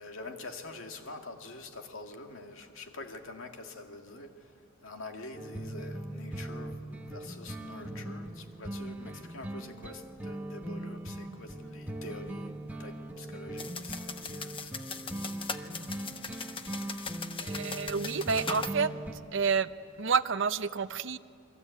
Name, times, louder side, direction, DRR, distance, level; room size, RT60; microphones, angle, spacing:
voice 1, 0.0-4.5 4.8-14.9, left 2 dB, 80° left, 4 dB, 2.2 m, -46 dB
sound 1, 5.3-19.1, right 1 dB, 10° right, 1.4 m, -40 dB
sound 2, 13.6-18.8, left 5 dB, 25° left, 1.0 m, -40 dB
voice 2, 17.4-18.9 19.3-19.7 20.0-21.2, right 5 dB, 65° right, 13 dB, 0.7 m, -29 dB
29.5 x 22.5 x 8.4 m, 2.5 s
head